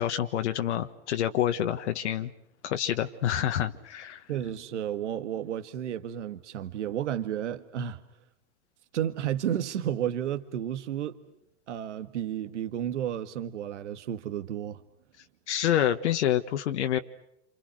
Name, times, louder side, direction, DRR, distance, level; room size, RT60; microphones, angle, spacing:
voice 1, 0.0-2.3 2.6-4.2 15.5-17.0, left 11 dB, 75° left, 1.5 m, -27 dB
voice 2, 4.3-8.0 8.9-11.2 11.7-14.8, right 10 dB, 80° right, 1.7 m, -32 dB
28.5 x 28.0 x 6.5 m
hypercardioid pair, 120°, 35 cm